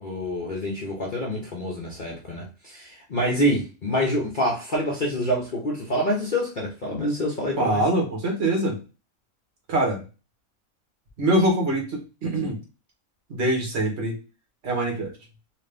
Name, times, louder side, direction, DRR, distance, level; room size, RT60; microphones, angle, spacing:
voice 1, 0.0-7.8, equal, 45° left, 0.7 m, -26 dB
voice 2, 7.6-8.8 9.7-10.0 11.2-12.6 13.3-14.2 14.6-15.1, right 1 dB, 50° right, 1.6 m, -23 dB
3.9 x 2.5 x 3.4 m
omnidirectional pair, 1.5 m